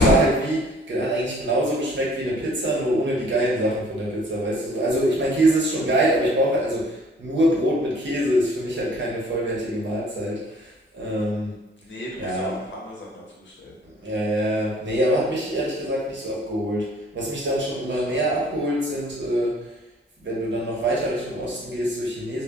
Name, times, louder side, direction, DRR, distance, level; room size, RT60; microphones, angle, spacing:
voice 1, 0.0-11.5 12.2-12.6 13.8-19.8 20.2-22.4, right 1 dB, 80° right, -5 dB, 0.9 m, -24 dB
voice 2, 11.8-13.8 18.0-18.3, left 1 dB, 80° left, -3 dB, 0.8 m, -26 dB
2.2 x 2.1 x 3.4 m, 1.0 s
wide cardioid pair, 90°, 19 cm